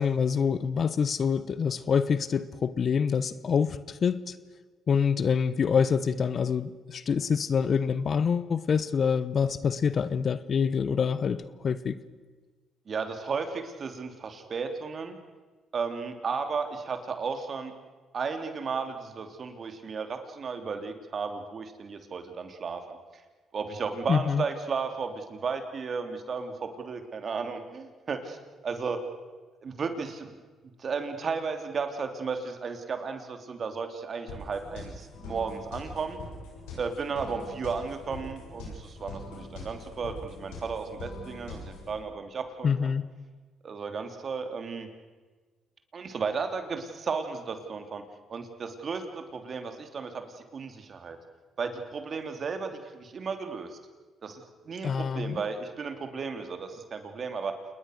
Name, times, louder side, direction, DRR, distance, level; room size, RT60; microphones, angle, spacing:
voice 1, 0.0-4.3 4.9-12.0 24.1-24.4 42.6-43.0 54.8-55.4, left 6 dB, 50° left, 1.1 m, -26 dB
voice 2, 12.9-15.2 15.7-17.7 18.1-23.2 23.5-28.4 28.6-29.0 29.6-30.3 30.8-36.2 36.8-42.9 43.6-44.9 45.9-48.0 48.3-51.2 51.6-53.8 54.2-57.5, right 5 dB, 50° right, 3.1 m, -34 dB
sound 1, 34.3-42.0, left 2 dB, 85° left, 7.4 m, -43 dB
28.5 x 20.5 x 6.6 m
supercardioid pair, 60°, 0 cm